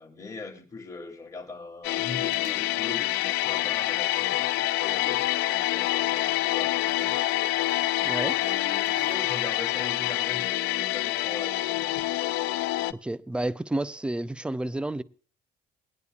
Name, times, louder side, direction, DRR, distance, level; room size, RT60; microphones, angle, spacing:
voice 1, 0.0-7.2 8.3-11.8, left 3 dB, 20° left, 2.8 m, -40 dB
sound 1, 1.8-12.9, left 16 dB, 90° left, 0.5 m, -27 dB
sound 2, 2.0-2.6 3.3-4.4 5.4-5.5 6.7-9.2 11.1-11.2, right 6 dB, 50° right, 1.2 m, -49 dB
voice 2, 8.0-8.4 12.9-15.0, right 1 dB, 5° right, 0.4 m, -30 dB
21.5 x 9.6 x 2.4 m
cardioid pair, 110°, 17 cm